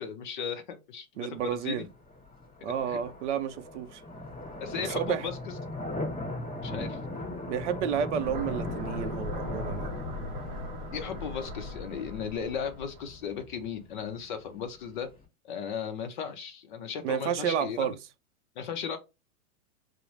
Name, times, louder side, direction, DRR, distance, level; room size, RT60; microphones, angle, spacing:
voice 1, 0.0-1.9 2.9-3.0 4.6-5.3 6.6-7.0 10.9-15.1 15.4-17.9 18.6-19.0, left 7 dB, 35° left, 0.5 m, -36 dB
voice 2, 1.2-1.9 2.6-4.0 4.8-5.3 7.5-9.9 17.0-18.0, right 8 dB, 55° right, 0.5 m, -31 dB
sound 1, 1.3-15.2, left 2 dB, 10° left, 1.0 m, -39 dB
sound 2, 8.2-13.2, left 1 dB, 15° right, 0.7 m, -39 dB
4.9 x 2.0 x 2.9 m
supercardioid pair, 155°, 44 cm